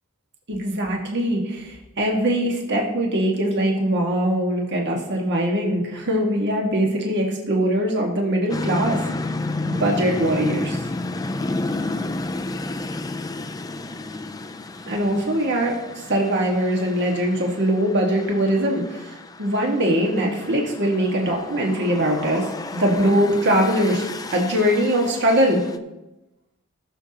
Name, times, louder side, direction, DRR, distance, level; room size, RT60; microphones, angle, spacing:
voice 1, 0.5-9.1 9.6-10.8 14.8-15.8 16.1-22.5 22.7-24.0 24.3-25.6, equal, 55° right, 0 dB, 1.7 m, -22 dB
sound 1, 8.5-25.8, left 2 dB, 15° left, 0.4 m, -32 dB
18.5 x 6.7 x 2.9 m, 1.0 s
head